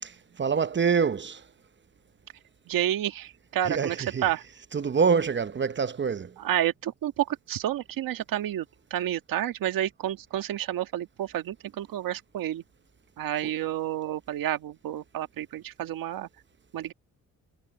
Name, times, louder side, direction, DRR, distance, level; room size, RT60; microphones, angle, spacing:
voice 1, 0.0-1.4 3.7-4.2 4.7-6.3 13.4-13.5, right 6 dB, 35° right, 0.9 m, -26 dB
voice 2, 2.7-4.4 6.4-12.6 13.2-16.3 16.7-16.9, right 12 dB, 80° right, 1.7 m, -30 dB
cardioid pair, 75°, 33 cm